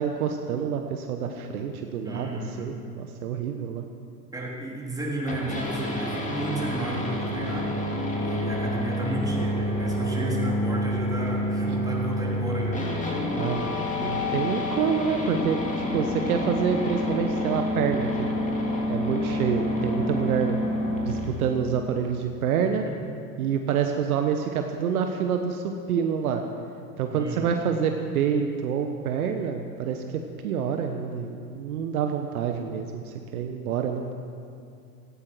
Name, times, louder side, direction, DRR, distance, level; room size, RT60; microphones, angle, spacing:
voice 1, 0.0-3.8 13.4-15.6 15.9-18.3 18.9-20.6 21.0-22.8 23.4-26.4 27.0-34.1, right 7 dB, 60° right, 5 dB, 1.2 m, -27 dB
voice 2, 2.0-2.7 4.3-7.7 8.2-12.8 27.1-27.7, right 2 dB, 5° right, -4 dB, 3.7 m, -33 dB
sound 1, 5.3-21.3, left 1 dB, 15° left, 2.8 m, -28 dB
17.5 x 15.5 x 4.7 m, 2.5 s
figure-of-eight pair, 85°, 49 cm